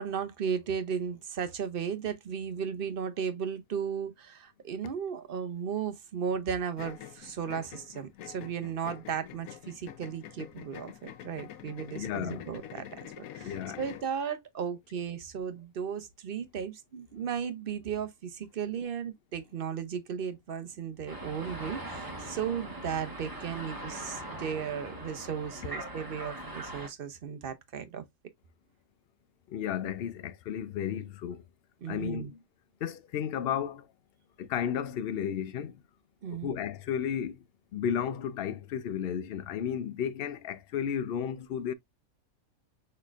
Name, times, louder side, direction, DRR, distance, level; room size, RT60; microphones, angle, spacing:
voice 1, 0.0-12.9 13.2-28.0 31.8-32.3 36.2-36.5, right 7 dB, 50° right, 0.7 m, -35 dB
sound 1, 6.8-14.1, left 10 dB, 85° left, 1.1 m, -46 dB
voice 2, 12.0-12.4 13.4-13.8 29.5-31.4 31.9-32.3 32.8-33.8 34.4-35.7 36.3-37.4 37.7-41.7, left 8 dB, 60° left, 0.6 m, -33 dB
sound 2, 21.1-26.9, right 1 dB, 15° right, 1.0 m, -41 dB
6.1 x 3.2 x 2.4 m
omnidirectional pair, 1.5 m